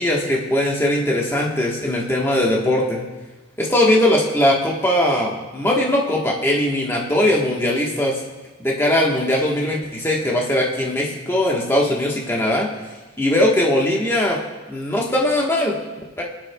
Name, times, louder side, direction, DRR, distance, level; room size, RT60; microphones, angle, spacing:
voice 1, 0.0-3.0 3.6-8.2 8.6-12.7 13.2-14.4 14.7-16.2, left 1 dB, 10° left, -3 dB, 1.2 m, -20 dB
21.0 x 9.5 x 2.3 m, 1.2 s
head